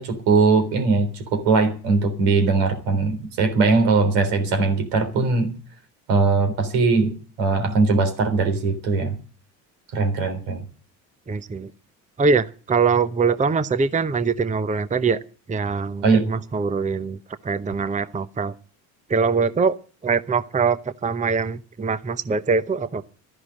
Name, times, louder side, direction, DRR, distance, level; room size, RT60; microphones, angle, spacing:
voice 1, 0.0-5.5 6.1-9.2 9.9-10.6 16.0-16.2, right 4 dB, 75° right, 3.7 m, -20 dB
voice 2, 11.3-11.7 12.2-15.2 15.5-18.5 19.1-19.8 20.0-23.0, right 5 dB, 15° right, 0.8 m, -23 dB
13.0 x 11.0 x 7.4 m
hypercardioid pair, 60°, 49 cm